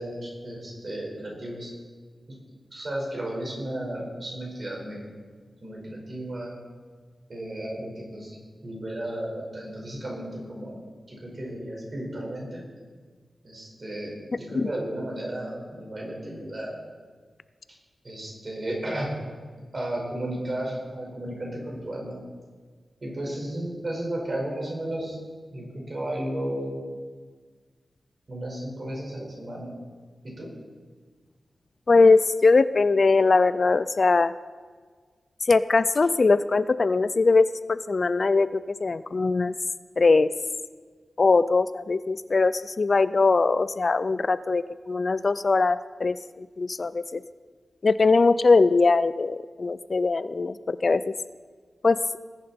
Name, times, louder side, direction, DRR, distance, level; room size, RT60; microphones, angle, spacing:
voice 1, 0.0-1.7 2.3-2.4 2.7-5.0 5.6-6.5 7.3-8.4 8.6-10.8 11.1-12.6 13.4-16.8 18.0-19.1 19.7-22.2 23.0-25.2 25.5-26.7 28.3-29.7 30.2-30.5, right 1 dB, 40° right, -2 dB, 4.8 m, -33 dB
voice 2, 31.9-34.3 35.4-39.5 40.0-40.3 41.2-47.2 47.8-51.1 51.8-52.0, left 3 dB, 45° left, 15 dB, 0.3 m, -21 dB
19.5 x 10.5 x 4.3 m, 1.5 s
wide cardioid pair, 125°, 0 cm